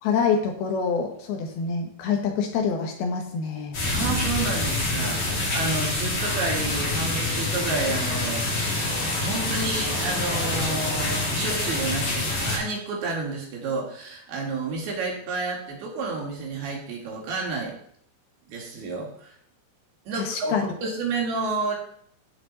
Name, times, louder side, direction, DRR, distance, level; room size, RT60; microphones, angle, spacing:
voice 1, 0.0-3.8 20.2-20.7, left 6 dB, 75° left, 3 dB, 3.2 m, -26 dB
sound 1, 3.7-12.6, left 2 dB, 40° left, 3.6 m, -26 dB
voice 2, 3.9-17.7 18.5-19.4 20.1-21.8, right 3 dB, 75° right, -1 dB, 4.1 m, -30 dB
14.5 x 6.0 x 4.1 m, 0.66 s
omnidirectional pair, 4.6 m